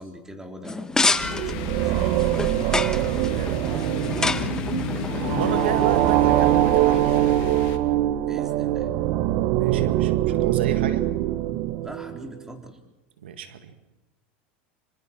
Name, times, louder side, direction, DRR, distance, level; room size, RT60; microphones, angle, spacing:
voice 1, 0.0-2.1 8.2-8.9 11.8-12.8, equal, 10° right, 3 dB, 4.0 m, -42 dB
sound 1, 0.6-6.1, left 3 dB, 10° left, 1.2 m, -29 dB
sound 2, 1.1-12.3, right 14 dB, 60° right, 1.2 m, -23 dB
sound 3, 1.2-7.8, left 10 dB, 60° left, 2.7 m, -34 dB
voice 2, 3.0-7.7 9.5-11.1 13.2-13.8, right 8 dB, 85° right, 8 dB, 2.0 m, -33 dB
27.0 x 25.5 x 4.6 m, 1.0 s
hypercardioid pair, 105°, 6 cm